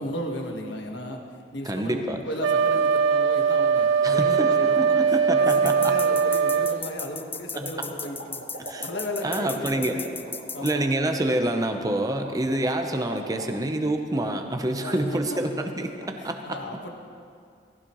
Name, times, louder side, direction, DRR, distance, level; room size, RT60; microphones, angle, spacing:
voice 1, 0.0-10.1 10.5-10.8 14.7-15.0 15.3-15.4 16.2-16.9, equal, 70° left, 2 dB, 1.4 m, -35 dB
voice 2, 1.6-2.2 4.0-6.0 7.6-7.9 8.6-8.9 9.2-10.0 10.6-16.8, right 1 dB, 20° right, 5 dB, 0.7 m, -27 dB
Wind instrument woodwind instrument, 2.4-6.8, right 6 dB, 90° right, 0.4 m, -21 dB
sound 1, 4.5-13.6, right 1 dB, 60° right, 1.8 m, -42 dB
sound 2, 5.5-10.7, left 5 dB, 10° left, 0.3 m, -36 dB
18.0 x 15.5 x 3.1 m, 2.3 s
head